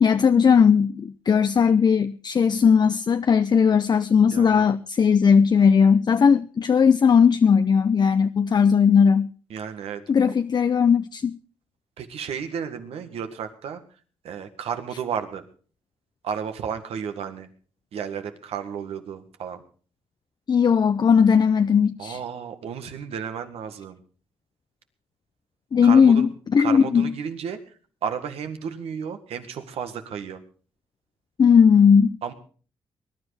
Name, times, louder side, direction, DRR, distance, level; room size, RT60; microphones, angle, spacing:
voice 1, 0.0-9.3 10.1-11.3 20.5-22.2 25.7-27.1 31.4-32.2, left 6 dB, 45° left, 0.6 m, -18 dB
voice 2, 4.3-4.7 9.5-10.0 12.0-13.8 14.2-15.4 16.2-17.5 17.9-19.6 22.0-24.0 25.8-26.3 26.6-27.6 28.0-30.4 32.2-32.3, right 7 dB, 80° right, 1.8 m, -32 dB
20.5 x 10.5 x 4.9 m
supercardioid pair, 60°, 10 cm